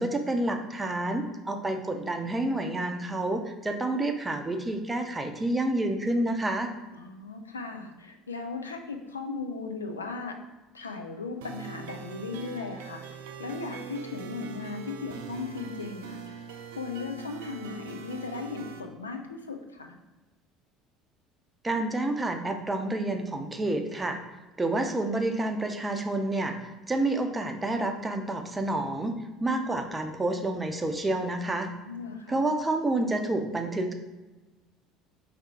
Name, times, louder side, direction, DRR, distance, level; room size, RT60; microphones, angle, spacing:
voice 1, 0.0-6.7 21.6-24.2 24.6-29.1 29.4-31.7 32.3-33.9, right 2 dB, 15° right, 5 dB, 0.6 m, -29 dB
voice 2, 6.9-10.4 10.7-16.2 16.8-20.0 31.9-32.4, left 4 dB, 80° left, 4 dB, 0.4 m, -37 dB
sound 1, 11.4-18.8, right 6 dB, 65° right, 0.4 m, -42 dB
3.6 x 3.4 x 4.1 m, 1.1 s
figure-of-eight pair, 65°, 0 cm